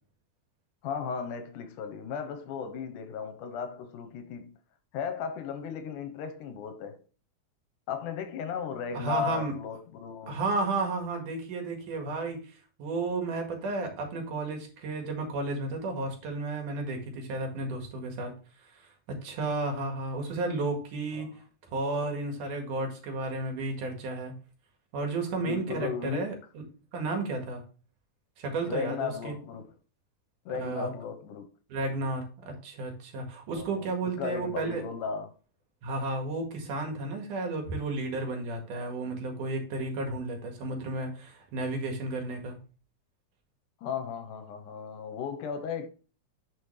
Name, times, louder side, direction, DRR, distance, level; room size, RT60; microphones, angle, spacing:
voice 1, 0.8-4.6 4.9-7.0 7.9-10.4 21.1-21.3 25.4-26.3 28.7-29.7 30.5-31.5 33.5-35.3 43.8-45.9, left 7 dB, 85° left, 2.6 m, -36 dB
voice 2, 8.9-9.5 10.3-12.4 12.8-18.3 19.1-21.3 21.7-24.3 24.9-26.3 26.9-27.6 28.4-29.3 30.6-30.9 31.7-34.8 35.8-42.6, right 2 dB, 80° right, 3.4 m, -32 dB
9.9 x 5.4 x 3.3 m
omnidirectional pair, 3.6 m